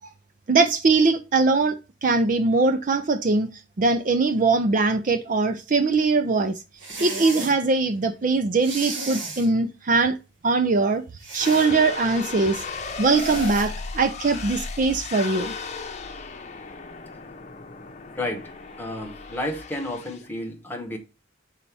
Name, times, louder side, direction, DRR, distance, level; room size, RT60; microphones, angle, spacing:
voice 1, 0.5-3.5 3.8-6.5 7.0-10.2 10.4-11.0 11.3-12.6 13.0-15.5, right 3 dB, 40° right, 0.4 m, -21 dB
sound 1, 6.8-7.6 8.6-9.5 11.2-11.7 13.1-13.7, right 3 dB, 75° right, 1.7 m, -34 dB
sound 2, 11.4-20.3, left 4 dB, 35° left, 0.8 m, -35 dB
voice 2, 18.1-18.5 18.8-21.0, left 1 dB, 10° left, 1.1 m, -31 dB
5.6 x 4.0 x 4.7 m
head